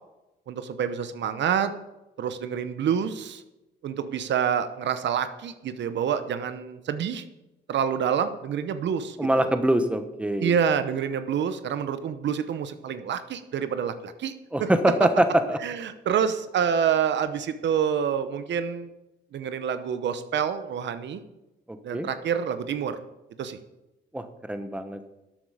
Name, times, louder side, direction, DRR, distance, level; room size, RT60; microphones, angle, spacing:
voice 1, 0.5-1.7 2.2-3.4 3.8-7.2 7.7-9.5 10.4-14.3 14.6-14.7 15.6-18.9 19.3-21.2 21.8-23.0 23.4-23.6, right 8 dB, 65° right, 11 dB, 0.9 m, -27 dB
voice 2, 9.2-10.6 14.5-15.6 21.7-22.1 24.1-25.1, right 1 dB, 5° right, 8 dB, 1.2 m, -24 dB
12.5 x 8.0 x 4.9 m, 0.96 s
cardioid pair, 90°, 20 cm